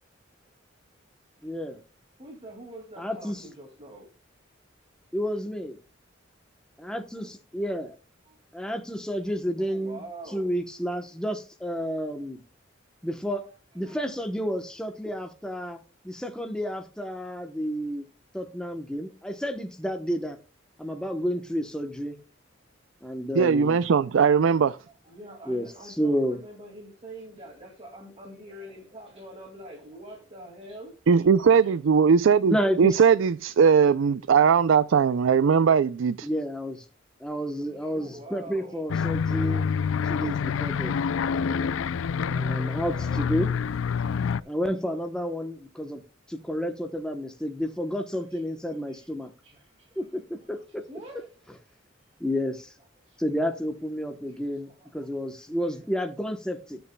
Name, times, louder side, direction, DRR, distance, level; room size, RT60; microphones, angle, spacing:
voice 1, 1.4-1.8 3.0-3.4 5.1-5.8 6.8-7.9 8.5-10.0 10.3-12.4 13.0-13.4 13.7-18.0 18.3-20.4 20.8-22.2 23.0-23.8 25.5-26.4 32.5-33.0 36.2-36.8 37.2-39.7 40.0-41.0 42.3-43.5 44.4-46.0 46.3-49.3 50.0-50.2 50.5-50.8 52.2-52.7 53.2-56.8, equal, 5° left, 0.9 m, -30 dB
voice 2, 2.2-4.1 7.2-7.3 8.3-8.7 9.6-10.5 13.4-13.5 13.8-14.0 23.8-23.9 24.6-31.8 35.0-35.1 37.6-38.8 39.7-40.3 41.5-43.3 43.6-44.5 46.4-46.5 47.9-48.4 48.7-51.3 53.0-53.3 54.1-55.1 55.4-55.8, right 1 dB, 30° right, 2.2 m, -47 dB
voice 3, 23.3-24.8 31.1-36.3, right 6 dB, 75° right, 0.4 m, -20 dB
sound 1, 38.9-44.4, left 6 dB, 90° left, 0.4 m, -27 dB
19.0 x 6.9 x 2.2 m
head